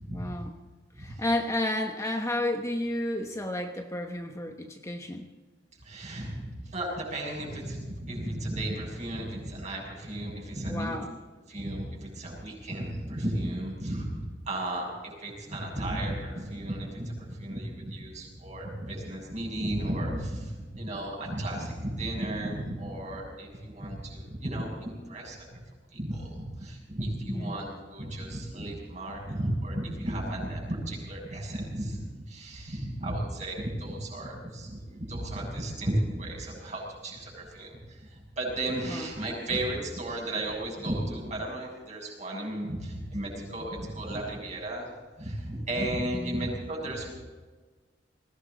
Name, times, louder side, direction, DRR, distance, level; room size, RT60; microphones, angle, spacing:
voice 1, 0.1-0.6 1.0-5.3 10.7-11.2 27.2-27.6 38.8-39.1 46.1-46.5, left 1 dB, 15° left, 4 dB, 1.1 m, -32 dB
voice 2, 5.8-11.0 11.5-25.6 25.9-32.0 32.3-44.9 45.2-47.1, right 1 dB, 40° right, -1 dB, 6.8 m, -34 dB
20.5 x 17.5 x 4.0 m, 1.3 s
head